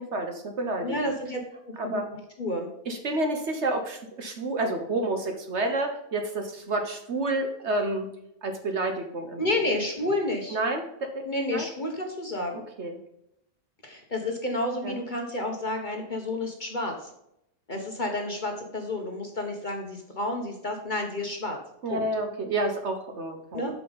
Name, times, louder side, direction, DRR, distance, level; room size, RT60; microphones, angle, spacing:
voice 1, 0.0-0.9 1.8-2.1 2.9-8.1 8.4-9.4 10.5-11.3 11.5-11.7 12.8-13.0 14.8-15.0 21.8-23.7, right 2 dB, 50° right, 5 dB, 1.1 m, -29 dB
voice 2, 0.8-1.4 1.8-2.0 2.4-2.7 9.4-10.6 11.2-12.6 13.8-17.1 17.7-21.6 21.9-22.0 23.5-23.7, left 1 dB, 35° left, 2 dB, 1.0 m, -30 dB
8.5 x 6.1 x 3.9 m, 0.78 s
omnidirectional pair, 1.6 m